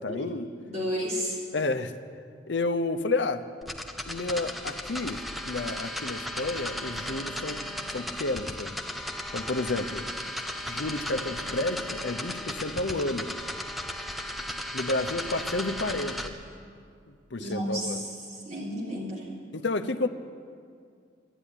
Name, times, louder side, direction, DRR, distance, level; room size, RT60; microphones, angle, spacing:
voice 1, 0.0-0.5 1.5-1.9 2.5-3.5 4.1-7.6 7.9-8.8 9.3-10.1 10.7-13.3 14.7-16.4 17.1-18.0 19.5-20.1, left 2 dB, 65° left, 9 dB, 0.7 m, -31 dB
voice 2, 0.6-1.4 17.4-19.3, equal, 35° right, -5 dB, 3.7 m, -32 dB
sound 1, 3.6-16.3, equal, ahead, 0.7 m, -35 dB
12.0 x 11.0 x 10.0 m, 2.3 s
head